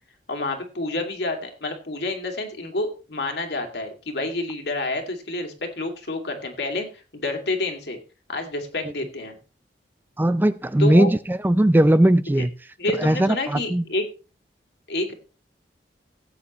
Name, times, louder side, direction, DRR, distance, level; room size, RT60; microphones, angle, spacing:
voice 1, 0.3-6.9 7.1-8.0 8.3-9.4 10.8-11.1 12.4-12.5 12.8-14.0 14.9-15.1, left 2 dB, 65° left, 4 dB, 2.5 m, -28 dB
voice 2, 10.2-12.5 13.0-13.8, right 1 dB, 10° right, 14 dB, 0.4 m, -19 dB
17.0 x 8.5 x 3.1 m, 0.34 s
head